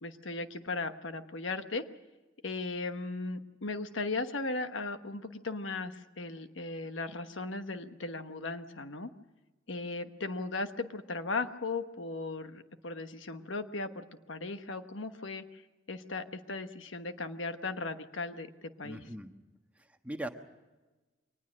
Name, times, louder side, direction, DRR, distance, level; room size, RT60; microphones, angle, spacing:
voice 1, 0.0-1.8 2.4-9.1 9.7-15.6 15.9-18.5 18.8-19.0, left 3 dB, 70° left, 8 dB, 1.2 m, -37 dB
voice 2, 18.8-19.3 19.8-20.3, right 1 dB, 5° right, 5 dB, 1.3 m, -40 dB
23.5 x 19.5 x 6.4 m, 1.2 s
head